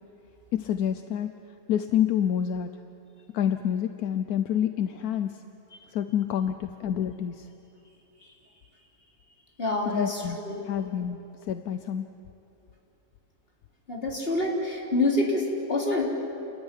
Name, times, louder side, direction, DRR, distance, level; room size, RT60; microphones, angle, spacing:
voice 1, 0.5-1.3 1.7-2.7 3.3-5.4 5.9-7.5 9.9-10.4 10.6-11.2 11.5-12.1, left 9 dB, 75° left, 9 dB, 1.2 m, -27 dB
voice 2, 9.6-10.6 13.9-16.1, left 2 dB, 35° left, -2 dB, 3.9 m, -27 dB
30.0 x 13.5 x 10.0 m, 2.9 s
omnidirectional pair, 1.6 m